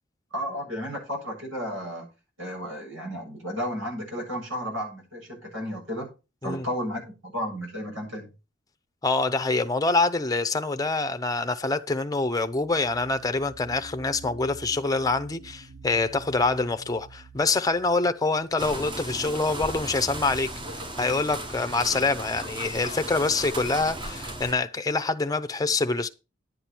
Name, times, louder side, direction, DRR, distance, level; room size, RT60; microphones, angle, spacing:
voice 1, 0.3-2.1 2.4-6.1 6.4-8.3, equal, 85° right, 7.6 m, -33 dB
voice 2, 9.0-20.5 21.0-26.1, left 3 dB, 20° left, 0.7 m, -25 dB
sound 1, 12.4-19.0, right 3 dB, 55° right, 1.1 m, -48 dB
sound 2, 18.6-24.5, right 1 dB, 25° right, 1.1 m, -36 dB
11.0 x 8.6 x 4.6 m
head